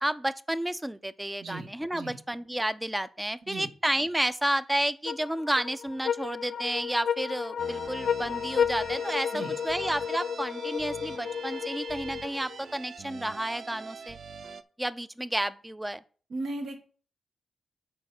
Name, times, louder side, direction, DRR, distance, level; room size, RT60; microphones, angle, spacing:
voice 1, 0.0-14.2 14.8-16.0, right 1 dB, 10° right, 0.5 m, -31 dB
voice 2, 1.4-2.2 3.5-3.7 9.3-9.6 16.3-16.8, right 2 dB, 75° right, 1.4 m, -37 dB
sound 1, 5.1-12.6, left 7 dB, 75° left, 0.4 m, -32 dB
sound 2, 7.6-14.6, right 6 dB, 60° right, 0.5 m, -44 dB
6.2 x 4.6 x 6.6 m
cardioid pair, 75°, 0 cm